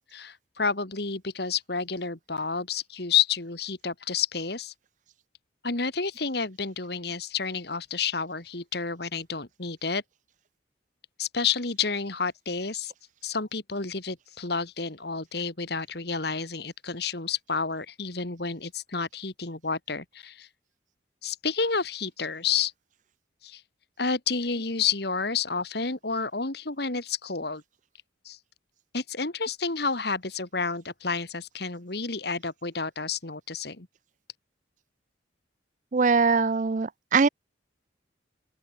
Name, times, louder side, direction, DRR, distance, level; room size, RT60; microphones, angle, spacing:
voice 1, 0.0-4.7 5.6-10.0 11.2-12.9 13.2-20.5 21.2-22.7 23.4-23.6 24.0-27.6 28.3-28.4 28.9-33.9, left 5 dB, 55° left, 2.0 m, -30 dB
voice 2, 35.9-37.3, right 4 dB, 40° right, 0.4 m, -22 dB
open air
head